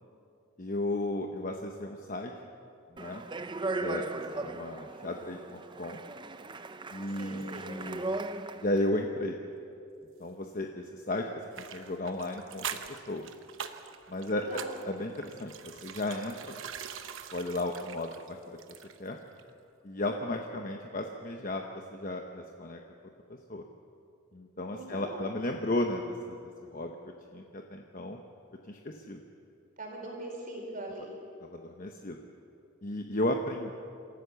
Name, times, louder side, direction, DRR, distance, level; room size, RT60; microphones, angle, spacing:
voice 1, 0.6-2.3 2.9-3.2 3.8-4.1 4.4-6.0 6.9-8.1 8.6-9.4 10.2-11.3 11.6-13.3 14.1-14.4 14.9-16.6 17.3-18.4 19.0-19.2 19.8-22.8 23.3-23.6 24.3-26.4 26.7-27.0 27.3-28.2 28.6-29.2 31.4-32.2 32.8-33.7, left 1 dB, 40° left, 3 dB, 1.0 m, -34 dB
Speech, 3.0-8.8, right 2 dB, 20° right, 0.5 m, -37 dB
voice 2, 7.2-7.7 14.2-14.7 24.7-25.2 29.8-31.1, right 1 dB, 40° right, 0 dB, 4.4 m, -41 dB
sound 1, 11.5-19.1 19.4-19.5, right 7 dB, 60° right, 1.0 m, -43 dB
27.5 x 15.0 x 7.0 m, 2.6 s
head